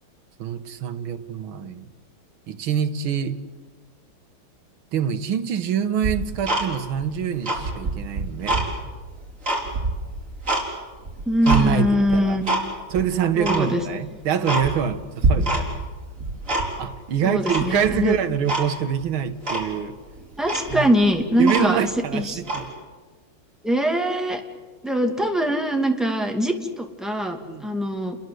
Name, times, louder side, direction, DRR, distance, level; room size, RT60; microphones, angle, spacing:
voice 1, 0.4-1.9 2.5-3.4 4.9-8.6 11.5-12.4 12.9-15.8 16.8-20.0 20.7-20.9 21.4-22.7 27.5-27.7, right 8 dB, 75° right, 9 dB, 2.1 m, -25 dB
Tick-tock, 6.0-7.0 7.4-8.7 9.1-10.7 11.0-11.6 12.1-12.6 12.9-13.0 13.4-13.6 14.0-14.1 14.4-15.0 15.2-15.9 16.1-16.9 17.5-18.0 18.5-18.7 19.0-19.1 19.4-19.7 20.2-20.3 20.4-21.9 22.4-22.7, right 2 dB, 35° right, 5.3 m, -25 dB
voice 2, 11.3-12.6 13.4-13.8 17.2-18.1 20.4-21.9 22.1-22.2 23.6-24.4 24.8-28.2, equal, ahead, 3 dB, 2.4 m, -22 dB
29.5 x 21.5 x 7.9 m, 1.3 s
omnidirectional pair, 2.3 m